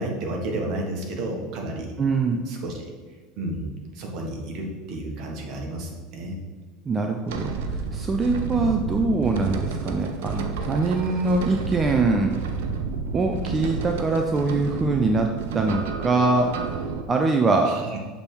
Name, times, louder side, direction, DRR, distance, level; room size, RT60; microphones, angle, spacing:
voice 1, 0.0-1.9 2.5-2.9 3.4-6.4 17.6-18.0, right 1 dB, 60° right, 0 dB, 1.4 m, -31 dB
voice 2, 2.0-2.4 6.9-12.3 13.1-16.5 17.1-17.7, right 3 dB, 25° right, 3 dB, 0.5 m, -23 dB
sound 1, 7.3-17.0, right 5 dB, 80° right, 0.6 m, -30 dB
6.8 x 3.4 x 4.5 m, 1.4 s
supercardioid pair, 100°, 0 cm